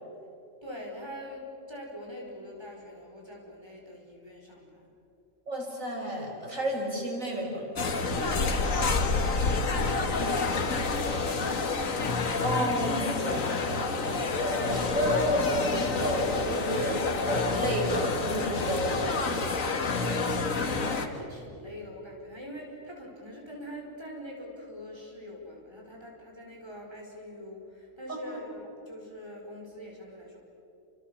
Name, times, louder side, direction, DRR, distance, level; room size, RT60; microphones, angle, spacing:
voice 1, 0.6-4.9 8.1-12.0 19.9-30.4, equal, 20° right, -1 dB, 5.2 m, -44 dB
voice 2, 5.5-7.7 12.4-14.0 14.4-19.2 28.3-28.4, equal, 80° right, 0 dB, 5.6 m, -31 dB
sound 1, 7.8-21.1, left 4 dB, 85° left, 2.0 m, -28 dB
29.0 x 27.5 x 7.3 m, 2.9 s
omnidirectional pair, 1.3 m